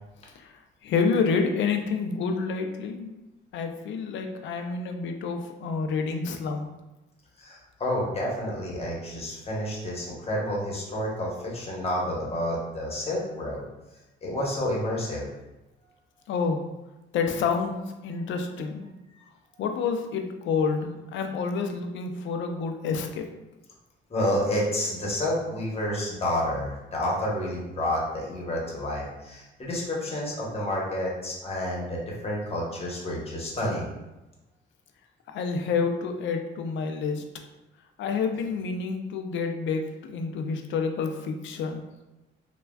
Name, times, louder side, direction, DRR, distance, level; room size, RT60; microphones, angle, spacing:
voice 1, 0.8-3.1 3.5-6.7 16.3-16.6 17.1-18.9 19.6-23.3 35.3-37.2 38.0-41.8, left 5 dB, 70° left, 5 dB, 0.4 m, -28 dB
voice 2, 7.4-13.6 14.2-15.3 19.1-19.2 24.1-33.9, left 1 dB, 30° left, -4 dB, 1.0 m, -29 dB
3.3 x 2.2 x 2.2 m, 1.0 s
cardioid pair, 90°, 20 cm